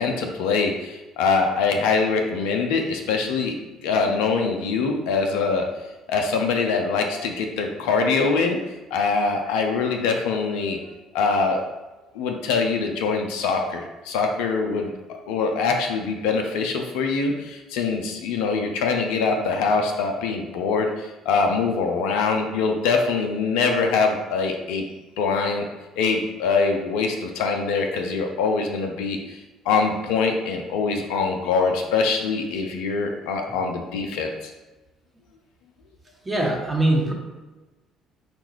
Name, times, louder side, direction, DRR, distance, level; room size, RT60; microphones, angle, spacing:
voice 1, 0.0-3.6 3.8-5.6 6.1-8.6 8.9-10.8 11.1-11.6 12.1-14.9 15.3-24.8 25.2-25.7 26.0-29.2 29.7-34.5, left 4 dB, 65° left, 3 dB, 0.4 m, -23 dB
voice 2, 36.2-37.1, right 1 dB, 15° right, 1 dB, 0.8 m, -22 dB
5.1 x 2.3 x 3.0 m, 1.1 s
figure-of-eight pair, 50°, 0 cm